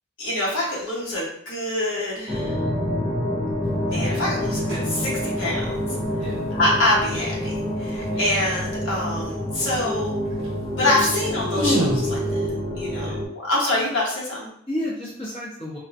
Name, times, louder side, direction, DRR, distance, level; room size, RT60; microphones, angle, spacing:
voice 1, 0.2-2.6 3.9-5.6 6.5-7.5 7.8-10.1 10.8-12.2 12.8-13.1 13.3-14.5, left 1 dB, 65° left, -5 dB, 1.1 m, -25 dB
sound 1, 2.3-13.3, equal, ahead, 1.0 m, -27 dB
sound 2, 3.6-3.8 4.5-5.0 5.3-5.9 9.3-9.4 9.7-10.0 10.3-10.5 10.9-11.0 11.2-12.0, equal, 70° right, 0.8 m, -26 dB
voice 2, 14.7-15.8, left 1 dB, 30° left, -7 dB, 0.9 m, -32 dB
4.3 x 2.2 x 2.5 m, 0.67 s
head